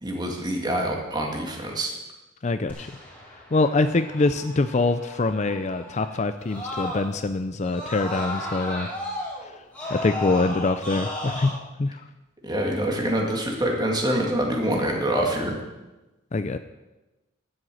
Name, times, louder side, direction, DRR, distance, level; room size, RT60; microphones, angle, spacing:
voice 1, 0.0-1.9 12.4-15.6, right 1 dB, 20° right, 1 dB, 2.1 m, -25 dB
voice 2, 2.4-2.9 3.5-8.9 9.9-12.0 16.3-16.6, left 3 dB, 35° left, 10 dB, 0.4 m, -24 dB
Screaming, 2.7-7.3 7.6-11.5, left 1 dB, 10° left, 3.5 m, -35 dB
12.0 x 7.9 x 7.7 m, 1.1 s
head